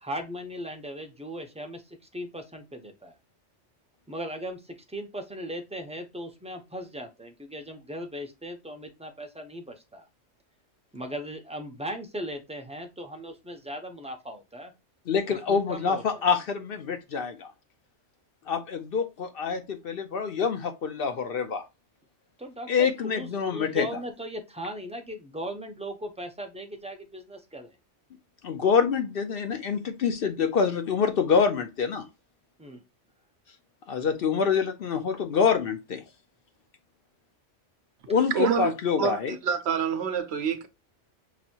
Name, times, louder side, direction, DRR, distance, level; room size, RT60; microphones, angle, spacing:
voice 1, 0.0-3.1 4.1-10.1 10.9-14.7 15.3-16.2 22.4-27.7 32.6-32.8, equal, 10° right, 0.5 m, -38 dB
voice 2, 15.1-17.5 18.5-21.6 22.7-23.9 28.4-32.1 33.9-36.0 38.1-39.3, left 6 dB, 60° left, 0.8 m, -26 dB
voice 3, 38.3-38.7 39.0-40.7, right 7 dB, 65° right, 0.9 m, -27 dB
6.0 x 2.6 x 2.8 m
omnidirectional pair, 1.2 m